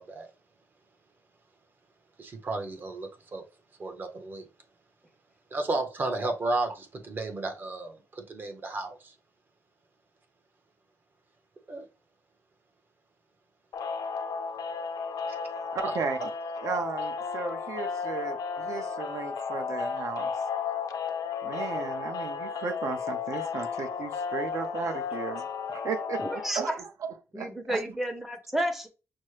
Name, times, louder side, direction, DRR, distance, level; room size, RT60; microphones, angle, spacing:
voice 1, 2.2-3.4 3.8-4.5 5.5-9.1 11.7-11.8 15.9-16.0, right 2 dB, 35° right, 0.8 m, -33 dB
sound 1, 13.7-26.5, left 5 dB, 90° left, 0.6 m, -33 dB
voice 2, 15.7-16.3 16.6-20.3 21.4-26.2 26.5-26.7 27.4-27.8, right 5 dB, 60° right, 0.8 m, -35 dB
voice 3, 26.2-26.8 27.3-28.9, right 1 dB, 5° right, 0.6 m, -31 dB
6.0 x 2.0 x 3.2 m
wide cardioid pair, 180°, 6 cm